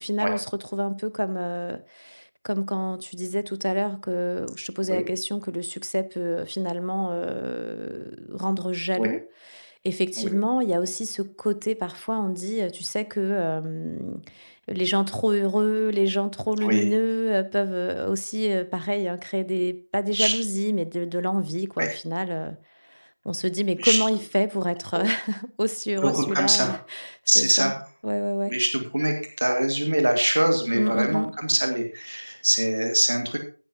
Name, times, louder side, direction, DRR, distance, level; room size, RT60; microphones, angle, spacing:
voice 1, 0.0-9.2 9.5-22.6 22.9-27.1 27.4-27.7 28.0-28.6 30.7-31.4, equal, 80° right, 0.8 m, -26 dB
voice 2, 26.0-26.7 27.3-27.8 28.5-33.4, right 1 dB, 25° right, 1.8 m, -23 dB
14.5 x 12.0 x 2.7 m
figure-of-eight pair, 175°, 0 cm